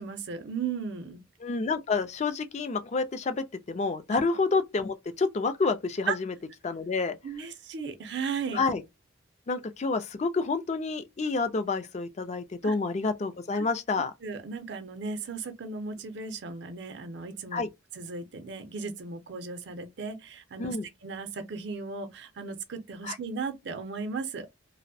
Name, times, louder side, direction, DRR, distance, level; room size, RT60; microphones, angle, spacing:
voice 1, 0.0-1.2 4.1-4.2 6.1-6.2 7.2-8.6 12.6-12.7 13.6-13.7 14.2-17.6 17.9-20.8 21.0-24.5, right 5 dB, 65° right, 0.5 m, -36 dB
voice 2, 1.4-6.3 6.6-7.2 8.5-8.8 9.5-14.1 17.5-17.7 20.6-20.9 23.0-23.2, left 4 dB, 35° left, 0.4 m, -29 dB
2.5 x 2.0 x 2.6 m
head